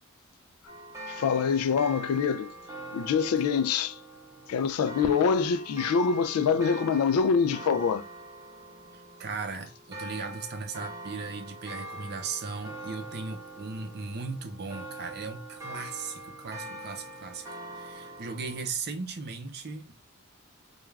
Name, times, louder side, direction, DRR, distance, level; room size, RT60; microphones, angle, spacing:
sound 1, 0.7-18.7, right 1 dB, 15° right, 0.7 m, -43 dB
voice 1, 1.1-2.5 2.9-4.0 4.5-8.0, left 6 dB, 90° left, 0.3 m, -25 dB
voice 2, 8.9-19.9, right 4 dB, 50° right, 0.6 m, -37 dB
2.3 x 2.3 x 3.2 m
head